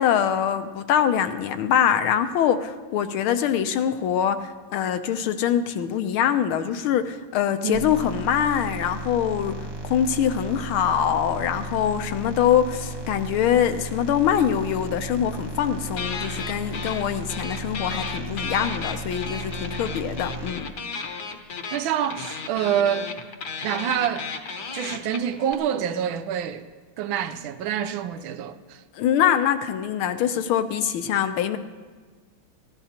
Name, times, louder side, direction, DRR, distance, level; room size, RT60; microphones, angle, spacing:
voice 1, 0.0-20.7 28.9-31.6, left 9 dB, 75° left, 1.6 m, -24 dB
sound 1, 7.7-20.5, right 2 dB, 20° right, 0.6 m, -35 dB
sound 2, 15.9-17.0 17.3-25.5, left 5 dB, 55° left, 1.4 m, -34 dB
voice 2, 21.7-23.2 23.6-24.3 24.7-26.6 27.0-28.8, right 9 dB, 75° right, 1.4 m, -26 dB
28.5 x 14.5 x 2.9 m
omnidirectional pair, 2.4 m